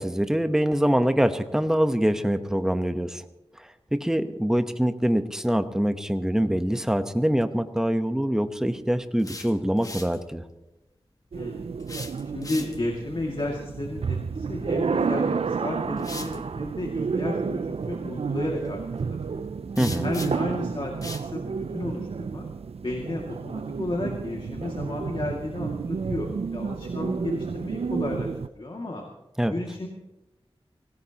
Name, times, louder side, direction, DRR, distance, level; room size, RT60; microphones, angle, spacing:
voice 1, 0.0-3.2 3.6-10.4 19.8-20.1 29.4-29.5, equal, 5° right, 8 dB, 1.0 m, -24 dB
sound 1, 9.2-10.2 11.8-13.0 15.0-15.2 16.0-16.4 19.8-20.5 21.0-21.3, left 2 dB, 35° left, 1.3 m, -39 dB
voice 2, 11.3-11.7 12.3-19.5 20.0-20.9 21.2-22.5 22.8-28.3 28.6-29.0 29.5-29.9, left 1 dB, 55° left, 0 dB, 2.3 m, -33 dB
sound 2, 11.3-28.5, right 5 dB, 75° right, 0.5 m, -31 dB
25.0 x 18.0 x 3.0 m, 1.0 s
wide cardioid pair, 65°, 10 cm